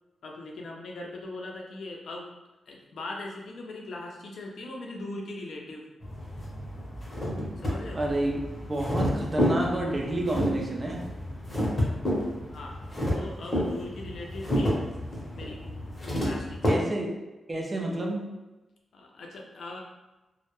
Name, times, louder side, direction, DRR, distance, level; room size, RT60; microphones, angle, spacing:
voice 1, 0.2-2.3 2.7-5.8 7.6-8.0 12.5-12.8 13.1-14.8 15.3-15.6 16.1-16.8 18.9-19.8, left 2 dB, 70° left, 0 dB, 0.4 m, -40 dB
sound 1, 6.0-16.7, equal, 25° left, 0.7 m, -30 dB
voice 2, 7.9-8.4 8.7-11.0 16.6-17.2 17.5-18.3, right 1 dB, 25° right, 0 dB, 0.4 m, -29 dB
2.1 x 2.0 x 2.9 m, 1.1 s
wide cardioid pair, 140°, 0 cm